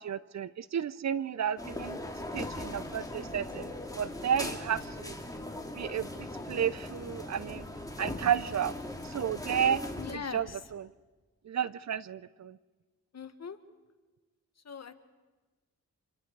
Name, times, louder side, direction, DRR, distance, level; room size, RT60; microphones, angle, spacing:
voice 1, 0.0-2.0 2.3-5.2 5.7-7.6 8.0-8.7 9.0-9.8 10.1-10.9 11.4-12.6, right 8 dB, 60° right, 0.7 m, -32 dB
sound 1, 1.6-10.1, left 1 dB, 10° left, 3.0 m, -39 dB
voice 2, 10.0-10.4 13.1-13.6 14.6-14.9, left 6 dB, 55° left, 1.7 m, -40 dB
29.5 x 26.5 x 4.8 m
cardioid pair, 55°, 31 cm